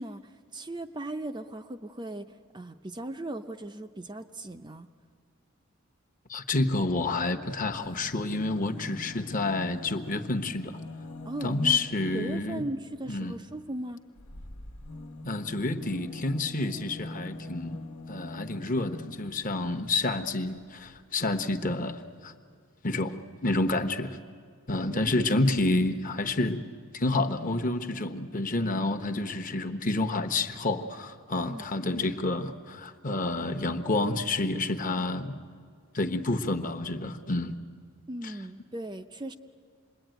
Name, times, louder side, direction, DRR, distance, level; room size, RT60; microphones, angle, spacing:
voice 1, 0.0-4.9 11.3-11.8 12.1-14.0 24.9-25.4 31.5-31.7 38.1-39.3, right 1 dB, 20° right, 7 dB, 0.6 m, -38 dB
voice 2, 6.3-10.8 11.4-12.6 13.1-13.3 15.2-17.8 18.1-22.3 22.8-24.2 24.7-26.6 26.9-35.4 35.9-37.6 38.2-38.3, left 2 dB, 35° left, 7 dB, 1.1 m, -29 dB
sound 1, 7.6-12.5 14.2-19.6 20.6-20.7 20.9-21.0, left 2 dB, 80° left, 1.4 m, -43 dB
27.0 x 22.0 x 9.1 m, 2.1 s
head